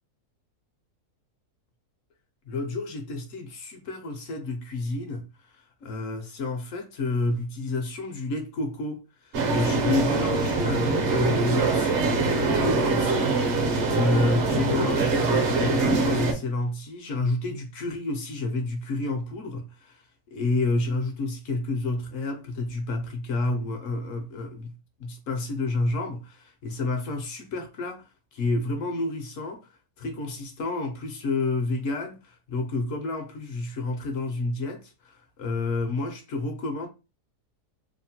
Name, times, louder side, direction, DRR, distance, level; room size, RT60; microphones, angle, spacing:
voice 1, 2.5-24.7 25.0-29.6 30.0-36.9, left 2 dB, 65° left, 0.8 m, -30 dB
sound 1, 9.3-16.3, right 3 dB, 60° right, 0.7 m, -24 dB
2.8 x 2.1 x 2.7 m
omnidirectional pair, 1.7 m